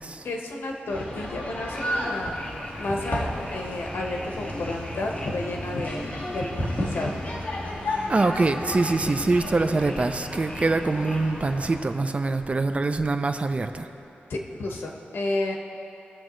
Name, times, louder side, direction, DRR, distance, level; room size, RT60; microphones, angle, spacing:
voice 1, 0.2-2.3 2.8-7.2 14.3-15.6, left 2 dB, 85° left, 0 dB, 1.3 m, -31 dB
sound 1, 0.9-11.8, left 1 dB, 45° left, 2.0 m, -33 dB
sound 2, 1.7-11.6, left 1 dB, 25° left, 1.3 m, -44 dB
voice 2, 7.8-13.9, right 3 dB, 35° right, 8 dB, 0.5 m, -24 dB
19.5 x 7.6 x 3.1 m, 2.9 s
wide cardioid pair, 100°, 4 cm